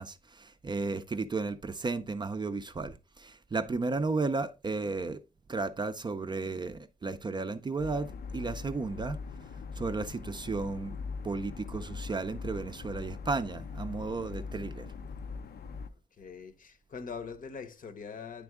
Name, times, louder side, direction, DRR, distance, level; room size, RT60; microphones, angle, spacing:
voice 1, 0.0-5.2 5.5-9.2 9.8-11.0 11.2-14.9, right 3 dB, 30° right, 0.4 m, -34 dB
sound 1, 7.8-15.9, left 5 dB, 90° left, 0.5 m, -41 dB
voice 2, 16.1-18.4, left 5 dB, 60° left, 0.8 m, -43 dB
9.7 x 3.5 x 3.4 m
wide cardioid pair, 160°, 16 cm